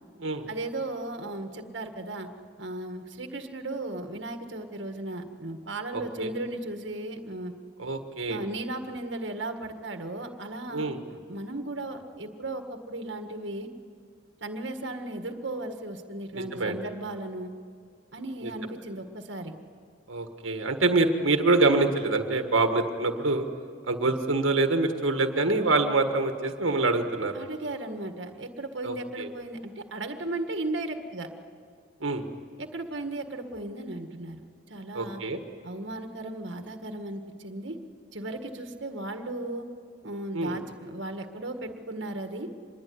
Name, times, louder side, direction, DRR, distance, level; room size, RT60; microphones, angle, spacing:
voice 1, 0.5-2.3 2.6-7.5 8.3-13.7 14.4-17.5 18.1-19.6 25.6-25.7 27.3-31.3 32.6-35.2 35.6-37.8 38.1-39.7 40.0-42.5, right 2 dB, 65° right, 6 dB, 1.8 m, -36 dB
voice 2, 5.9-6.3 7.8-8.4 10.7-11.0 16.3-16.8 18.4-18.5 20.1-23.5 23.9-27.3 28.8-29.3 32.0-32.2 34.9-35.4 40.3-40.6, right 3 dB, 90° right, 6 dB, 1.7 m, -25 dB
25.5 x 21.0 x 9.6 m, 2.2 s
head